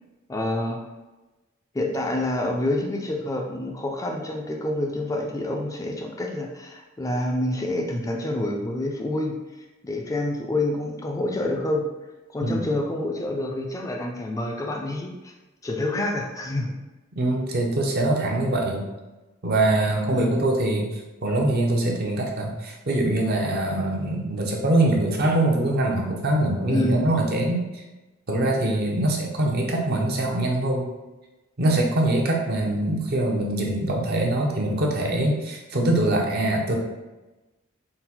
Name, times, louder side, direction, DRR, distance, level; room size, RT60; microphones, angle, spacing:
voice 1, 0.3-0.9 1.7-9.4 9.8-11.9 12.3-15.3 15.6-16.8 20.1-20.4 26.7-27.1, left 1 dB, 15° left, 1 dB, 0.3 m, -27 dB
voice 2, 17.1-18.9 19.4-27.8 28.3-30.9 31.6-36.7, right 1 dB, 50° right, 0 dB, 0.7 m, -23 dB
3.8 x 2.1 x 4.2 m, 1.1 s
head